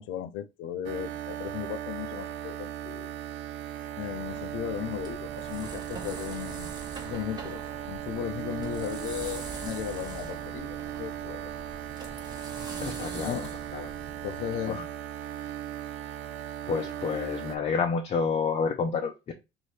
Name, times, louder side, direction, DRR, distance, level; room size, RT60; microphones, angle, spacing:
voice 1, 0.0-3.1 4.0-6.7 7.0-7.6 7.9-11.5 13.2-13.5 14.2-14.8, left 10 dB, 85° left, 0.5 m, -36 dB
sound 1, 0.8-17.6, right 11 dB, 70° right, 0.5 m, -37 dB
sound 2, 4.3-14.6, right 3 dB, 20° right, 1.0 m, -44 dB
voice 2, 12.8-13.5 13.7-13.9 14.7-14.8 16.4-19.3, left 5 dB, 35° left, 0.6 m, -29 dB
3.2 x 2.7 x 4.2 m
cardioid pair, 140°, 20 cm